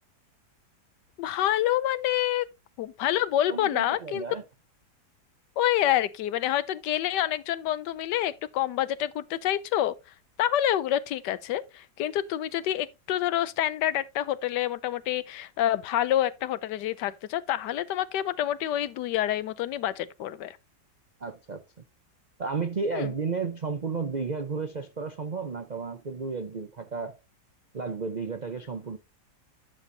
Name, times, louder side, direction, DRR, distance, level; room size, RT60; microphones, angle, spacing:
voice 1, 1.2-2.5 2.8-4.2 5.6-10.0 10.4-20.6 22.9-23.1, left 12 dB, 75° left, 1.2 m, -27 dB
voice 2, 3.5-4.4 21.2-21.6 22.4-27.2 27.7-29.0, right 4 dB, 65° right, 0.4 m, -32 dB
11.0 x 6.9 x 2.7 m
omnidirectional pair, 1.9 m